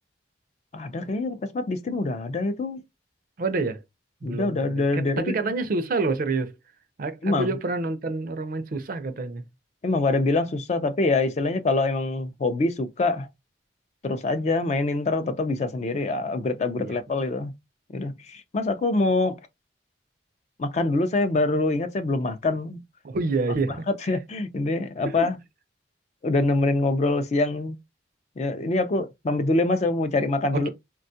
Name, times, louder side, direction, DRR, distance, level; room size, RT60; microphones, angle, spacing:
voice 1, 0.7-2.8 4.2-5.3 7.2-7.5 9.8-13.3 14.0-17.5 17.9-19.4 20.6-22.8 23.9-25.4 26.2-27.8 28.4-30.7, left 2 dB, 40° left, 0.4 m, -25 dB
voice 2, 3.4-3.8 4.2-6.6 7.0-9.5 16.7-17.0 23.0-23.8 25.0-25.3 30.5-30.7, right 3 dB, 50° right, 0.4 m, -28 dB
3.4 x 2.2 x 2.6 m
head